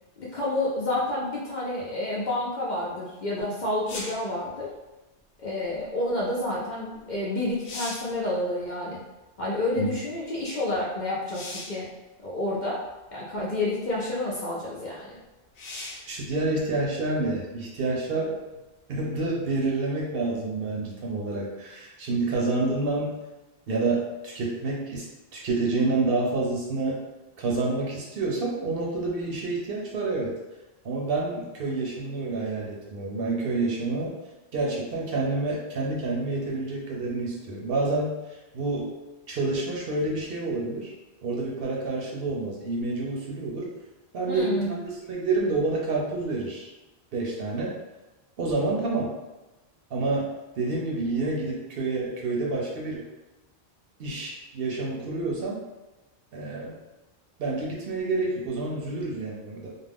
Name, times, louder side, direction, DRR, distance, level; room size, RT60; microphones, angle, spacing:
voice 1, 0.2-4.7 5.4-9.0 9.4-11.9 12.2-12.8 13.1-15.2 44.3-44.7, left 1 dB, 55° left, -6 dB, 0.6 m, -29 dB
sound 1, 3.9-4.3 7.0-7.1 7.5-8.2 11.3-11.8 12.9-13.0 15.5-16.1 19.7-19.8, left 2 dB, 85° left, 0.9 m, -38 dB
voice 2, 16.1-18.4 18.9-23.1 23.7-25.0 25.3-27.0 27.4-30.3 30.8-34.2 34.5-38.9 39.3-40.9 41.2-43.7 44.1-46.7 47.1-47.7 48.4-49.1 49.9-53.0 54.0-55.6 56.3-56.8 57.4-59.7, right 3 dB, 60° right, -3 dB, 0.8 m, -28 dB
2.4 x 2.2 x 3.4 m, 1.1 s
omnidirectional pair, 1.2 m